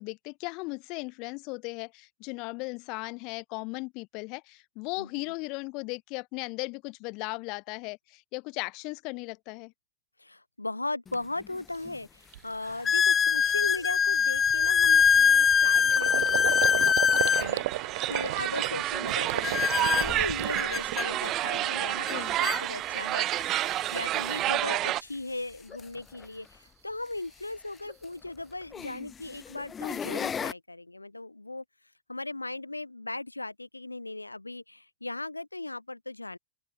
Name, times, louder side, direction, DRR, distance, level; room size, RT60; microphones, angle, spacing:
voice 1, 0.0-9.7 22.1-22.4, left 28 dB, 45° left, 3.1 m, -37 dB
voice 2, 5.0-5.3 10.2-23.3 23.6-31.6 32.1-36.4, left 2 dB, 85° left, 7.5 m, -37 dB
sound 1, 11.1-11.2 11.9-12.0 12.8-17.5 19.4-21.1 22.1-22.2 22.4-22.6 23.4-23.5 25.7-25.8 27.9-28.0 28.7-29.0 29.6-30.5, left 7 dB, 20° left, 0.6 m, -24 dB
Gurgling, 11.7-11.8 12.3-12.6 13.0-13.1 13.4-21.4 21.8-22.4, right 16 dB, 55° right, 4.4 m, -35 dB
sound 2, 17.2-25.0, right 15 dB, 35° right, 2.4 m, -30 dB
open air
figure-of-eight pair, 90°, 0 cm